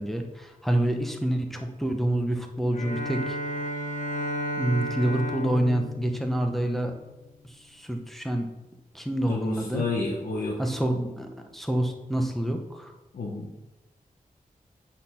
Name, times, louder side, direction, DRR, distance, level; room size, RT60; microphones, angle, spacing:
voice 1, 0.0-3.4 4.6-6.9 7.7-8.5 8.9-9.8 10.6-12.9, right 1 dB, ahead, 4 dB, 0.8 m, -27 dB
Bowed string instrument, 2.7-7.1, equal, 55° left, 1.3 m, -33 dB
voice 2, 9.3-10.6 13.1-13.5, left 3 dB, 75° left, -4 dB, 1.2 m, -30 dB
8.5 x 4.3 x 5.6 m, 1.0 s
wide cardioid pair, 150°, 15 cm